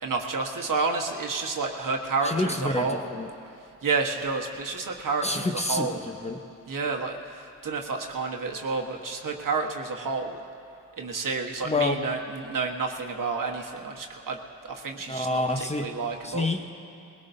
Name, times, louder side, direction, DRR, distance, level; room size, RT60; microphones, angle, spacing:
voice 1, 0.0-3.0 3.8-6.0 6.7-10.3 11.0-16.5, right 4 dB, 60° right, 1 dB, 1.4 m, -30 dB
voice 2, 2.2-3.3 5.2-6.4 11.6-12.0 15.1-15.9 16.2-16.7, left 2 dB, 20° left, 4 dB, 1.0 m, -28 dB
20.0 x 18.0 x 2.7 m, 2.6 s
cardioid pair, 60°, 36 cm